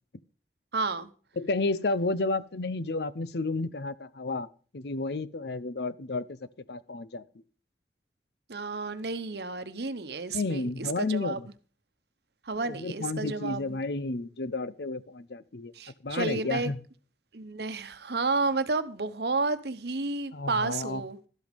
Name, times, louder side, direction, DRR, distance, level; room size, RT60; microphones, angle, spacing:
voice 1, 0.7-1.1 8.5-11.4 12.5-13.8 15.7-16.7 17.3-21.2, right 3 dB, 70° right, 1.0 m, -31 dB
voice 2, 1.4-4.5 4.7-6.4 6.7-7.2 10.3-11.5 12.6-15.7 16.0-16.8 20.3-21.0, left 3 dB, 70° left, 0.7 m, -31 dB
12.5 x 8.2 x 5.2 m
head